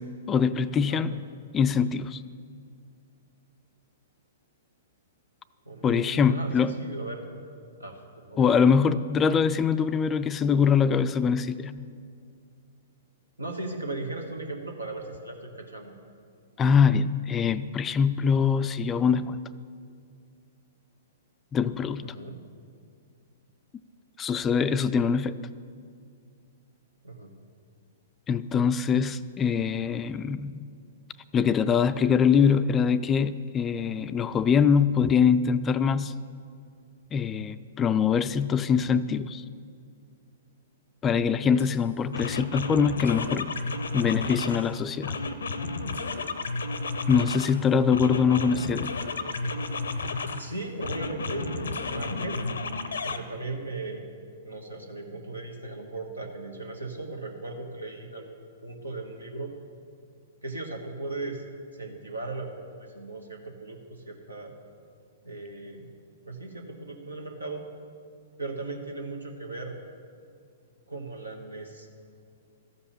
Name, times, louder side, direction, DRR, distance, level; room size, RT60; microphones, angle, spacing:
voice 1, 0.3-1.2 1.5-2.2 5.8-6.8 8.4-11.7 16.6-19.4 21.5-22.1 24.2-25.3 28.3-30.7 31.3-36.1 37.1-39.4 41.0-43.5 43.9-45.2 47.1-48.9, left 6 dB, 20° left, 14 dB, 0.3 m, -23 dB
voice 2, 0.8-1.2 5.6-7.2 7.8-8.4 8.9-9.0 13.4-15.9 22.0-22.4 27.0-27.3 41.1-41.5 48.2-48.6 49.2-49.6 50.4-52.4 53.0-54.0 54.4-59.5 60.4-61.4 61.7-64.5 65.2-65.9 66.2-67.6 68.4-69.7 70.9-71.9, right 2 dB, 90° right, 3 dB, 1.4 m, -37 dB
sound 1, 41.6-41.7 42.1-44.7 45.0-47.6 47.9-50.4 50.8-53.2, left 3 dB, 80° left, 0.6 m, -32 dB
13.5 x 5.5 x 7.0 m, 2.3 s
figure-of-eight pair, 115°, 0 cm